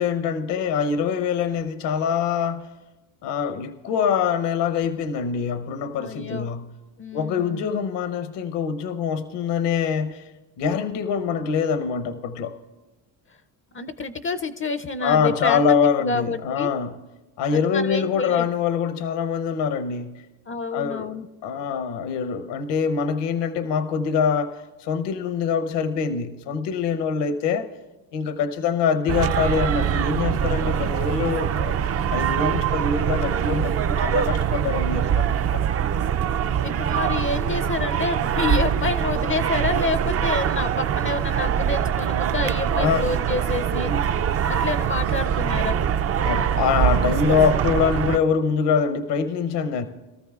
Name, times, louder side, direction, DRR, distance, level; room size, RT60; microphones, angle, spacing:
voice 1, 0.0-2.7 3.2-6.7 7.1-10.3 10.6-12.6 15.0-17.0 17.4-20.2 20.7-21.1 21.4-27.7 28.1-31.7 32.1-35.7 42.7-43.0 43.7-44.0 46.2-49.9, left 6 dB, 65° left, 0.9 m, -24 dB
voice 2, 5.9-6.5 7.0-7.8 13.7-16.7 17.5-18.5 20.5-21.3 36.6-45.8, left 4 dB, 30° left, 0.5 m, -28 dB
sound 1, 29.1-48.2, right 8 dB, 35° right, 0.4 m, -23 dB
22.5 x 13.5 x 2.4 m
supercardioid pair, 75°, 45 cm